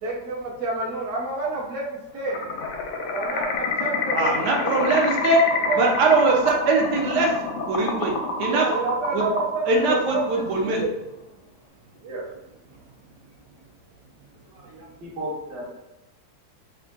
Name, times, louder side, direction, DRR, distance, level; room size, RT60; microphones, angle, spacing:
voice 1, 0.0-2.3 3.1-4.4 4.6-5.3 5.6-5.9 8.5-10.9 12.0-12.3, right 3 dB, 55° right, -5 dB, 1.0 m, -29 dB
sound 1, 2.3-10.7, left 2 dB, 85° left, 1.2 m, -28 dB
voice 2, 4.1-5.4 5.8-7.3 7.7-8.7 9.1-9.3 9.7-10.8, right 3 dB, 85° right, 0 dB, 1.3 m, -21 dB
voice 3, 14.4-15.6, equal, 40° right, -5 dB, 1.3 m, -35 dB
3.5 x 2.4 x 3.7 m, 0.97 s
omnidirectional pair, 1.7 m